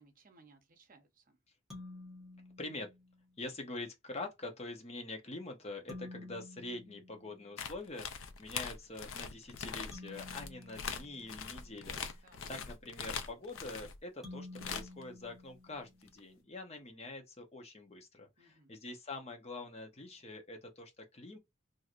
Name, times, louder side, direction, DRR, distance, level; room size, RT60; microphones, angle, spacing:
voice 1, 0.0-1.4 12.2-12.5 18.4-18.8, right 3 dB, 45° right, 0.7 m, -63 dB
sound 1, 1.7-3.4 5.9-7.9 9.9-12.0 14.2-16.3, left 2 dB, ahead, 1.1 m, -51 dB
voice 2, 2.6-2.9 3.4-21.4, left 2 dB, 30° left, 0.8 m, -45 dB
sound 2, 7.6-14.0 14.5-15.0 16.1-16.2, left 6 dB, 90° left, 0.5 m, -42 dB
3.1 x 2.6 x 2.4 m
head